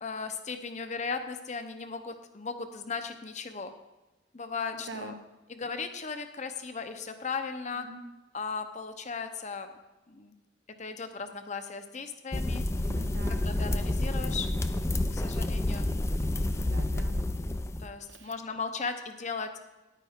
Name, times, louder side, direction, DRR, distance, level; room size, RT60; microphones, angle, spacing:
voice 1, 0.0-3.7 4.3-5.2 5.5-7.9 8.3-9.7 10.1-10.3 10.8-12.6 13.3-14.5 15.1-15.9 17.8-19.6, left 5 dB, 40° left, 8 dB, 0.8 m, -37 dB
voice 2, 4.7-5.2 7.7-8.0 12.9-13.5 16.6-17.2 18.1-18.3, right 2 dB, 90° right, 7 dB, 0.9 m, -44 dB
sound 1, 12.3-17.9, left 1 dB, 15° left, 0.4 m, -29 dB
10.0 x 9.2 x 3.6 m, 1.1 s
head